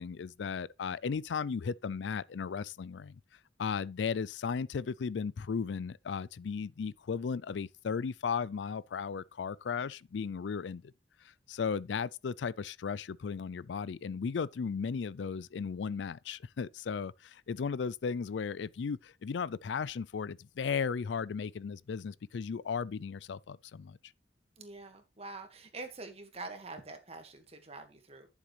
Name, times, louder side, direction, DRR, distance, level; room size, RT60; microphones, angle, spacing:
voice 1, 0.0-3.2 3.6-10.8 11.5-24.0, left 6 dB, 85° left, 0.4 m, -35 dB
voice 2, 24.6-28.3, right 3 dB, 35° right, 1.8 m, -45 dB
11.0 x 7.2 x 3.3 m
head